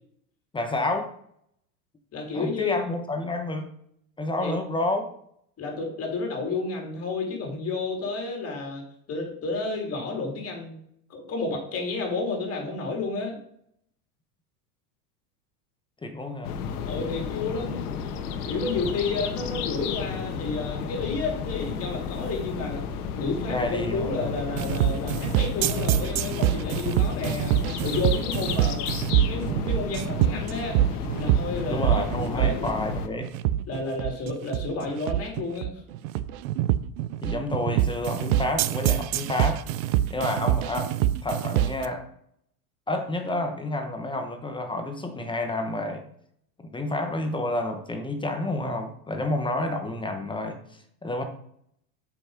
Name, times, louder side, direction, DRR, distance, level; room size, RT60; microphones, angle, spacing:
voice 1, 0.5-1.1 2.3-3.7 4.2-5.1 16.0-16.5 23.4-24.3 31.7-33.3 37.2-39.6 40.1-40.9 41.2-42.0 42.9-46.0 46.7-50.6 51.0-51.2, left 2 dB, 10° left, 5 dB, 1.0 m, -29 dB
voice 2, 2.1-2.8 4.4-4.6 5.6-8.8 9.1-10.8 11.1-13.4 16.9-17.9 18.5-22.8 23.1-27.6 27.8-28.8 29.3-30.8 31.2-32.7 33.7-35.7, left 3 dB, 30° left, 1 dB, 3.5 m, -31 dB
sound 1, 16.4-33.1, left 6 dB, 70° left, 1.3 m, -32 dB
sound 2, 24.6-41.9, right 13 dB, 65° right, 0.7 m, -25 dB
7.7 x 5.9 x 5.1 m, 0.69 s
supercardioid pair, 130°, 46 cm